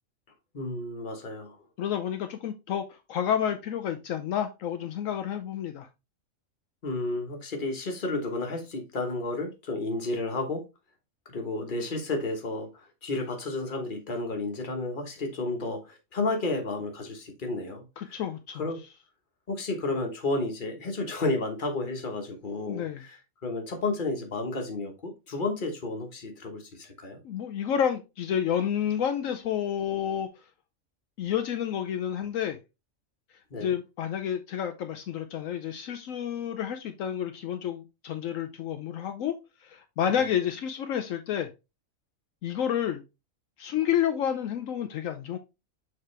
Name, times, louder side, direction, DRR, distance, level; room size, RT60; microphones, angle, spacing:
voice 1, 0.5-1.6 6.8-10.6 11.2-18.2 18.6-18.8 19.5-27.2 33.5-33.7 40.1-40.2, left 2 dB, 40° left, 1.4 m, -32 dB
voice 2, 1.8-5.9 18.0-18.6 22.7-23.0 27.2-30.4 31.2-32.6 33.6-39.3 39.6-41.5 42.4-43.0 43.6-45.4, left 9 dB, 75° left, 1.0 m, -30 dB
6.8 x 4.3 x 3.2 m
omnidirectional pair, 1.4 m